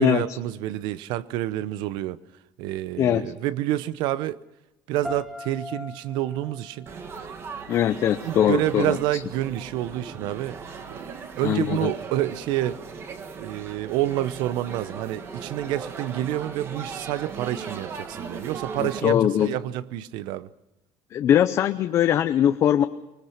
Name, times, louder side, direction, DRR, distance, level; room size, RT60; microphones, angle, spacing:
voice 1, 0.0-2.2 2.6-4.4 4.9-6.9 8.2-10.6 10.9-11.0 11.4-12.8 13.4-20.5, right 14 dB, 65° right, 0.8 m, -28 dB
voice 2, 3.0-3.3 7.7-9.2 11.4-11.9 18.8-19.6 21.1-22.8, left 10 dB, 35° left, 0.7 m, -21 dB
sound 1, 5.0-8.0, left 2 dB, 5° right, 1.0 m, -40 dB
Laughter / Chatter / Crowd, 6.9-19.0, right 5 dB, 30° right, 1.6 m, -38 dB
24.5 x 20.5 x 5.9 m
cardioid pair, 170°, 9 cm